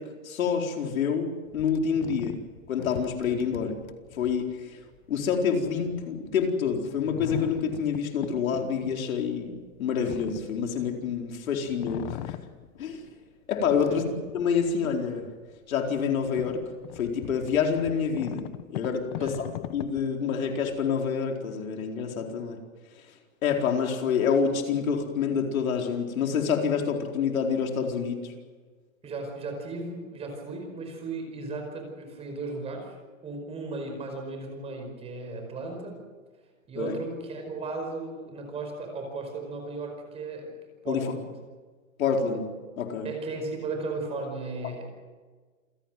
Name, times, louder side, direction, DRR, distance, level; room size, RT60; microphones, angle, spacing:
voice 1, 0.0-2.4 2.7-3.7 4.1-4.8 5.1-12.4 12.8-13.0 13.5-15.3 15.7-16.7 17.0-19.5 19.7-22.6 23.4-28.3 36.8-37.0 40.8-41.0 42.0-43.1, left 6 dB, 75° left, 2 dB, 4.4 m, -27 dB
sound 1, 1.5-11.3 11.7-13.1 13.5-14.8 15.3-15.4 15.9-21.0, left 14 dB, 35° left, 1.2 m, -41 dB
voice 2, 29.0-33.0 33.2-36.0 36.7-40.5 40.8-41.3 43.0-44.8, right 3 dB, 15° right, 3 dB, 5.0 m, -35 dB
28.0 x 16.5 x 7.6 m, 1.4 s
supercardioid pair, 165°, 41 cm